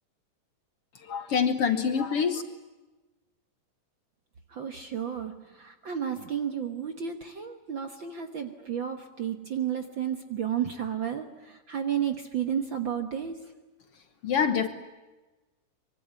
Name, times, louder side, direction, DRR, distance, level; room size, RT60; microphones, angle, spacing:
voice 1, 0.9-2.4 14.2-14.7, left 6 dB, 60° left, 1.7 m, -26 dB
voice 2, 4.5-13.4, right 9 dB, 55° right, 1.4 m, -32 dB
24.5 x 24.0 x 9.4 m
omnidirectional pair, 3.9 m